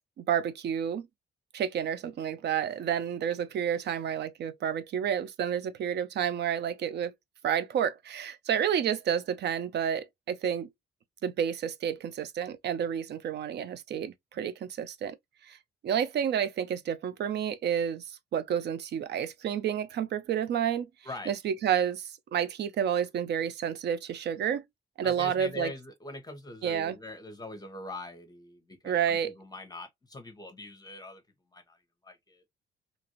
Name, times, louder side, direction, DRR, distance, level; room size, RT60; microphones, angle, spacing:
voice 1, 0.2-1.1 1.5-7.1 7.4-10.7 11.2-15.2 15.5-15.6 15.8-20.9 21.3-24.6 25.0-25.7 26.6-27.0 28.8-29.3, right 8 dB, 60° right, 0.5 m, -30 dB
voice 2, 25.0-31.2 31.5-32.4, left 2 dB, 20° left, 0.9 m, -43 dB
2.9 x 2.5 x 2.9 m
cardioid pair, 90°, 20 cm